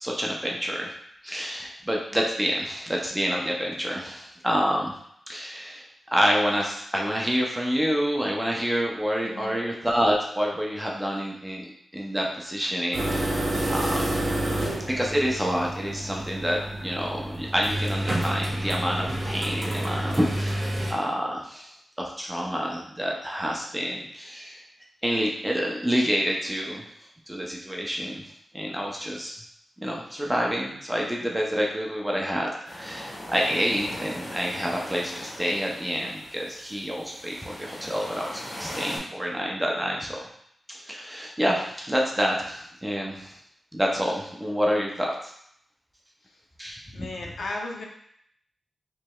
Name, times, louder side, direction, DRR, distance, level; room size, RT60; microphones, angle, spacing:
voice 1, 0.0-0.9 1.2-4.9 5.3-13.4 13.7-14.1 14.9-24.6 25.0-26.8 27.3-28.2 28.5-29.4 29.8-40.2 40.7-43.4 43.7-45.3 46.6-47.0, equal, 10° right, -1 dB, 0.5 m, -28 dB
voice 2, 9.2-9.5 46.2-46.4 46.9-47.9, left 2 dB, 70° left, 0 dB, 0.6 m, -35 dB
sound 1, 12.9-20.9, right 1 dB, 50° right, 0.9 m, -29 dB
sound 2, 32.6-39.0, left 1 dB, 40° left, 1.2 m, -39 dB
4.6 x 3.1 x 2.3 m, 0.70 s
wide cardioid pair, 150°, 0 cm